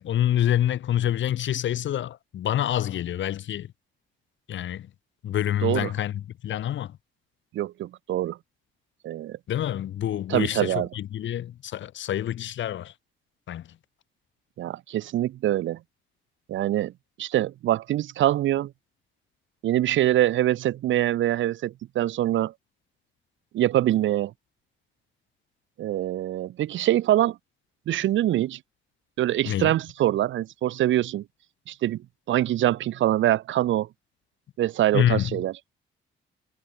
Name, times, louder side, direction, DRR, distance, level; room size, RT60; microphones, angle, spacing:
voice 1, 0.0-3.7 4.5-4.9 5.2-7.0 9.5-12.9 13.5-13.7 29.4-29.7 34.9-35.4, left 11 dB, 70° left, 3.3 m, -27 dB
voice 2, 7.5-8.4 9.0-9.4 10.3-10.9 14.6-15.8 16.5-16.9 17.2-18.7 19.6-22.5 23.5-24.3 25.8-27.4 27.9-28.6 29.2-31.2 31.7-32.0 32.3-33.9 34.6-35.5, right 13 dB, 70° right, 0.9 m, -24 dB
cardioid pair, 90°, 20 cm